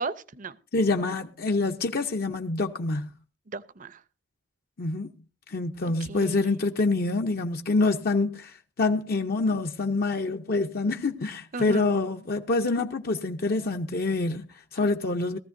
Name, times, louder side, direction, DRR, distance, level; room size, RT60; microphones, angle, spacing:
voice 1, 0.0-0.6 3.5-4.0 5.8-6.5 11.5-11.9, right 4 dB, 45° right, 0.6 m, -35 dB
voice 2, 0.7-3.1 4.8-5.1 5.5-15.4, left 3 dB, 55° left, 0.6 m, -26 dB
19.0 x 14.0 x 2.6 m
head